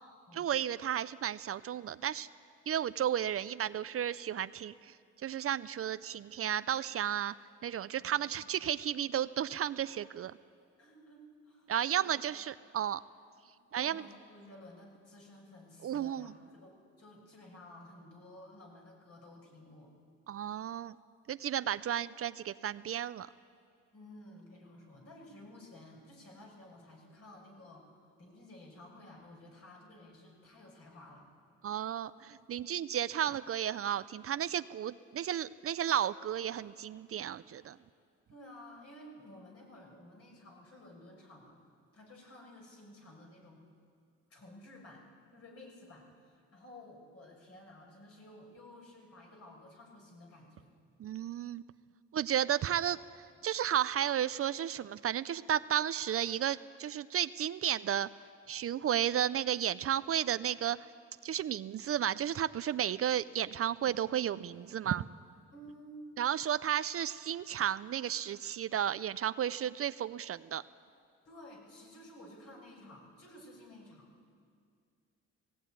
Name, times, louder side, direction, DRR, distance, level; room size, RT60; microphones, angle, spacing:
voice 1, 0.3-2.3 2.7-4.9 5.2-7.3 7.6-10.3 11.7-13.0 13.7-14.1 15.8-16.3 20.3-21.0 21.3-23.3 31.6-37.8 51.0-51.6 52.1-53.0 53.4-58.1 58.5-60.9 61.2-65.1 66.2-70.6, right 10 dB, 50° right, 15 dB, 0.5 m, -33 dB
voice 2, 7.9-8.5 10.8-12.4 13.3-13.5 13.7-19.9 23.9-31.3 38.3-41.6 41.9-43.6 44.3-45.1 45.3-50.7 65.5-66.0 71.2-74.1, left 1 dB, 55° left, -1 dB, 6.2 m, -54 dB
18.0 x 17.5 x 9.4 m, 2.2 s
cardioid pair, 90°, 30 cm